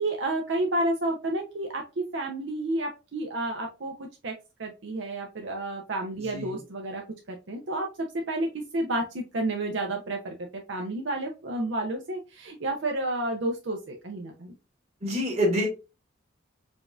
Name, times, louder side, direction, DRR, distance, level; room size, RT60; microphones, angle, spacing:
voice 1, 0.0-4.3 4.6-7.0 7.3-14.5, right 1 dB, 70° right, 2 dB, 0.6 m, -31 dB
voice 2, 6.3-6.6 15.0-15.7, equal, 35° right, -2 dB, 1.6 m, -26 dB
5.0 x 2.6 x 2.3 m, 0.28 s
head